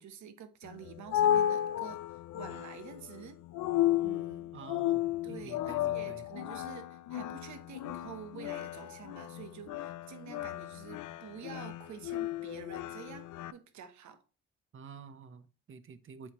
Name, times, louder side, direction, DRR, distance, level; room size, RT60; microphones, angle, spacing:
voice 1, 0.0-3.4 4.0-4.5 5.2-14.2, right 8 dB, 70° right, 1.1 m, -48 dB
sound 1, 0.6-13.5, left 12 dB, 80° left, 0.5 m, -34 dB
voice 2, 4.5-6.2 14.7-16.3, right 6 dB, 45° right, 0.9 m, -50 dB
7.5 x 4.3 x 3.0 m
cardioid pair, 90°, 30 cm